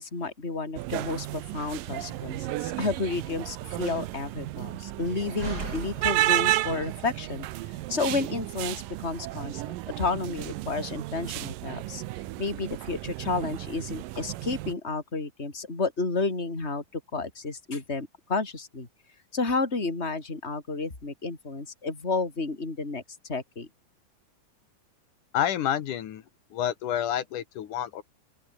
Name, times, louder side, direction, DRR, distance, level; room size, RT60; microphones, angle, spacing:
voice 1, 0.0-7.5 7.9-12.0 12.4-18.9 19.3-23.0 23.3-23.7, left 3 dB, 20° left, 4.6 m, -31 dB
sound 1, 0.8-14.7, right 16 dB, 90° right, 2.6 m, -32 dB
Slam, 1.5-7.0, right 3 dB, 30° right, 4.3 m, -43 dB
voice 2, 25.3-26.2 26.5-28.0, left 10 dB, 70° left, 3.0 m, -28 dB
open air
omnidirectional pair, 3.8 m